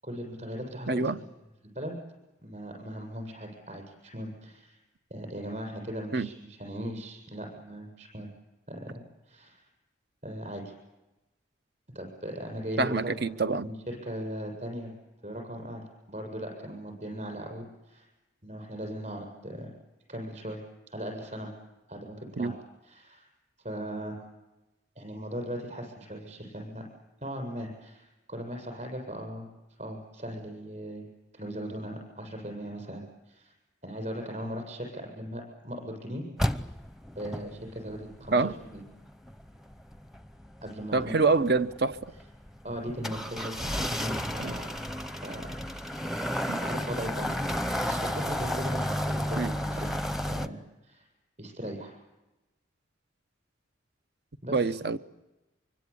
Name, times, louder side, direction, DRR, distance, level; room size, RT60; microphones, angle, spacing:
voice 1, 0.0-1.2 1.7-2.0 2.4-4.8 5.1-8.3 8.7-9.7 10.2-10.7 11.9-14.9 15.2-18.1 18.4-19.7 20.1-20.6 20.9-21.5 21.9-22.5 22.9-23.3 23.6-24.3 25.0-26.8 27.2-29.5 29.8-31.1 31.3-33.5 33.8-36.2 37.2-38.8 40.6-41.1 42.6-44.7 45.2-46.0 46.6-47.4 47.8-49.9 50.3-51.0 51.4-51.9 54.4-54.7, equal, 40° right, 7.4 m, -38 dB
voice 2, 0.9-1.2 6.1-6.3 12.8-13.7 22.4-22.6 38.3-38.5 40.9-42.1 44.4-44.5 46.5-46.6 49.4-49.5 54.5-55.0, right 3 dB, 55° right, 0.9 m, -26 dB
sound 1, 36.4-50.5, equal, ahead, 0.8 m, -33 dB
25.0 x 24.5 x 8.7 m
head